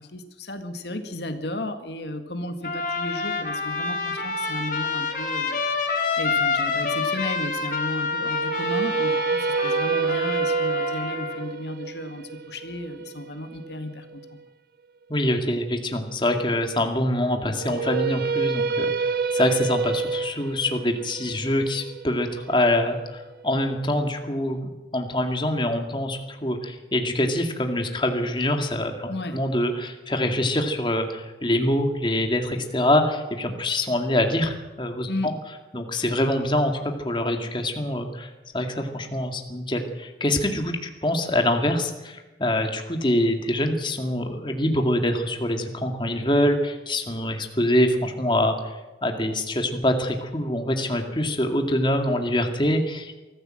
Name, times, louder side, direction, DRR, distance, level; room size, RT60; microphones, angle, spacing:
voice 1, 0.0-5.6 6.2-14.4 29.1-29.4 35.1-35.4, left 1 dB, 75° left, 7 dB, 1.9 m, -34 dB
Trumpet, 2.6-11.4, left 4 dB, 50° left, 3.9 m, -27 dB
sound 1, 8.2-14.3 17.5-23.6, right 5 dB, 55° right, 0.8 m, -28 dB
voice 2, 15.1-24.6 24.9-35.3 35.7-48.7 49.0-53.2, left 1 dB, 25° left, 5 dB, 2.2 m, -25 dB
23.5 x 15.0 x 7.6 m, 1.1 s
head